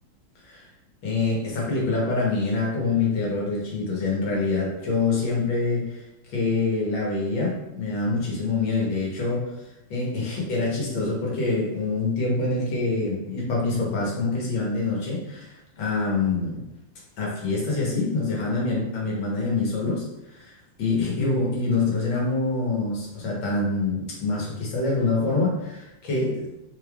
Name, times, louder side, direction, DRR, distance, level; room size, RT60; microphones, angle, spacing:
voice 1, 1.0-6.0 6.3-9.5 9.9-16.6 17.2-20.5 20.8-26.6, left 3 dB, 75° left, -3 dB, 1.8 m, -25 dB
4.1 x 3.2 x 2.3 m, 0.90 s
omnidirectional pair, 2.1 m